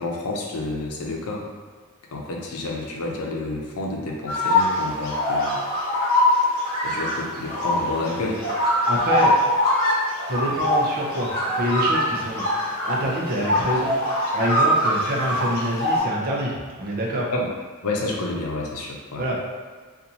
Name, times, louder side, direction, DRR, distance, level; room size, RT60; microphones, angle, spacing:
voice 1, 0.0-1.4 2.1-5.6 6.8-8.4 17.3-17.5 17.8-19.2, left 2 dB, 80° left, -1 dB, 0.6 m, -29 dB
sound 1, 4.3-16.0, left 1 dB, 45° left, 1.0 m, -23 dB
voice 2, 8.9-9.4 10.3-12.5 12.8-17.3 19.2-19.4, right 1 dB, 45° right, -2 dB, 0.7 m, -26 dB
4.0 x 2.5 x 2.8 m, 1.5 s
head